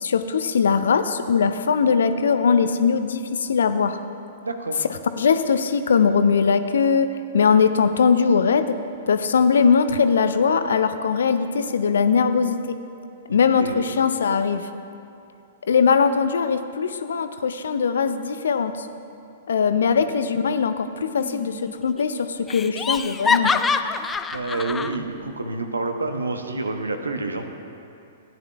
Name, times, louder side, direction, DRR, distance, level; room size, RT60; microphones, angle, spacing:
voice 1, 0.0-4.0 5.2-8.8 9.1-12.6 13.3-14.7 15.6-18.9 19.5-23.6, left 6 dB, 65° left, 10 dB, 0.5 m, -20 dB
voice 2, 4.4-4.9 13.3-13.9 24.3-27.5, right 2 dB, 75° right, 6 dB, 0.9 m, -28 dB
Laughter, 21.2-21.7 22.0-22.1 22.5-25.0, left 5 dB, 15° left, 0.3 m, -25 dB
16.5 x 10.5 x 2.4 m, 2.6 s
figure-of-eight pair, 105°, 0 cm